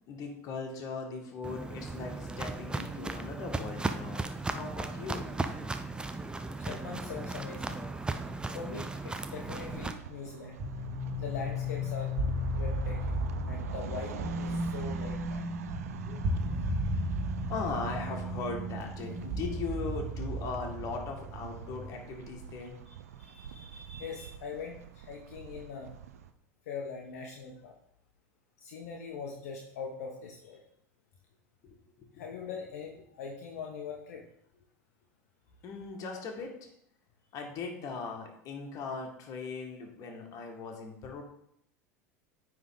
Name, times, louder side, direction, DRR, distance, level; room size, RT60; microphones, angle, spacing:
voice 1, 0.1-5.2 16.0-16.2 17.5-22.8 31.6-32.2 35.6-36.7 37.3-41.2, left 4 dB, 45° left, 1 dB, 1.7 m, -39 dB
Walk footsteps, 1.4-9.9, right 3 dB, 10° right, 0.6 m, -36 dB
voice 2, 6.6-7.8 8.5-10.6 11.2-12.2 12.5-13.1 13.5-15.4 22.9-25.9 26.7-27.8 28.6-30.6 32.2-34.2 36.1-36.2, left 5 dB, 70° left, 0 dB, 0.9 m, -42 dB
sound 1, 9.5-26.3, right 8 dB, 75° right, 0.5 m, -46 dB
sound 2, 10.6-21.9, equal, 30° right, 2.0 m, -34 dB
9.4 x 3.6 x 3.8 m, 0.72 s
hypercardioid pair, 80°, 8 cm